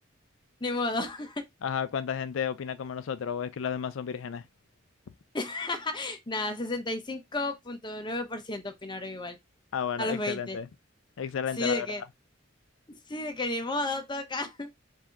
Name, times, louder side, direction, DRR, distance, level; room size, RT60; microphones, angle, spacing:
voice 1, 0.6-1.4 5.3-9.4 10.0-10.6 11.6-12.0 12.9-14.7, left 2 dB, 25° left, 0.8 m, -32 dB
voice 2, 1.6-4.4 9.7-10.7 11.2-11.9, left 7 dB, 80° left, 0.4 m, -32 dB
4.8 x 2.7 x 3.5 m
head